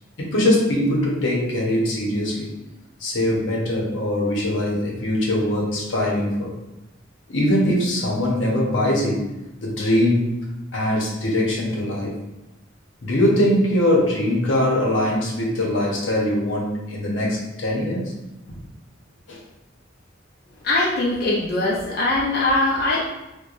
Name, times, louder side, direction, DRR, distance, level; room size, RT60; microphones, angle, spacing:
voice 1, 0.2-2.5 3.0-6.5 7.3-9.3 9.6-10.3 10.7-12.2 13.0-18.1 18.5-18.6 19.3-19.4, left 1 dB, 85° left, -3 dB, 0.9 m, -22 dB
voice 2, 20.6-23.0, left 2 dB, 55° left, -5 dB, 0.5 m, -21 dB
4.5 x 2.2 x 2.5 m, 0.99 s
head